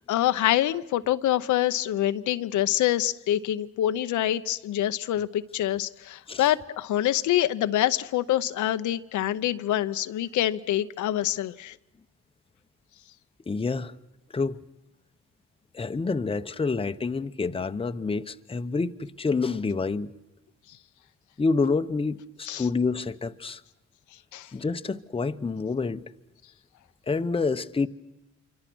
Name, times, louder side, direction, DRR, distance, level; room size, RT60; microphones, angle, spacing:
voice 1, 0.1-11.7 22.5-22.7 24.3-24.5, left 13 dB, 75° left, 0.8 m, -26 dB
voice 2, 13.5-13.9 14.3-14.6 15.7-20.1 21.4-23.6 24.5-26.0 27.1-27.9, left 4 dB, 20° left, 0.8 m, -28 dB
26.5 x 24.5 x 6.2 m
cardioid pair, 90°, 30 cm